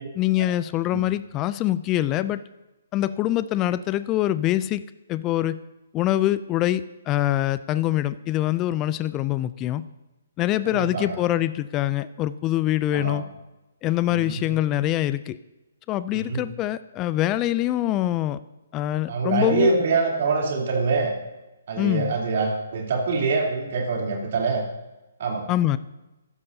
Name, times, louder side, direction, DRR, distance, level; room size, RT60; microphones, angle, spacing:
voice 1, 0.1-2.4 2.9-4.8 5.1-5.6 5.9-9.8 10.4-13.2 13.8-15.4 15.9-18.4 18.7-19.7 21.8-22.1 25.5-25.8, left 13 dB, 25° left, 15 dB, 0.4 m, -24 dB
voice 2, 10.6-11.2 12.9-13.2 14.1-14.4 16.1-16.4 19.1-21.1 21.7-24.6 25.2-25.5, right 4 dB, 55° right, -1 dB, 3.4 m, -25 dB
14.5 x 12.0 x 2.8 m, 1.0 s
hypercardioid pair, 135°, 0 cm